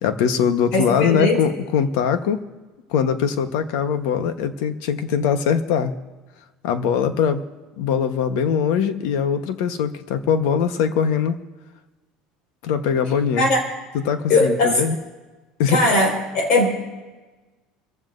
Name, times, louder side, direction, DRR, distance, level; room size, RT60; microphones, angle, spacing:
voice 1, 0.0-2.5 2.9-5.9 6.6-7.4 7.8-11.4 12.6-13.5 13.9-15.0 15.6-15.9, left 7 dB, 75° left, 9 dB, 1.2 m, -21 dB
voice 2, 0.7-1.4 13.4-13.6 14.3-14.8 15.7-16.8, left 2 dB, 50° left, 1 dB, 5.2 m, -19 dB
27.5 x 15.0 x 2.6 m, 1.2 s
cardioid pair, 170°, 2 cm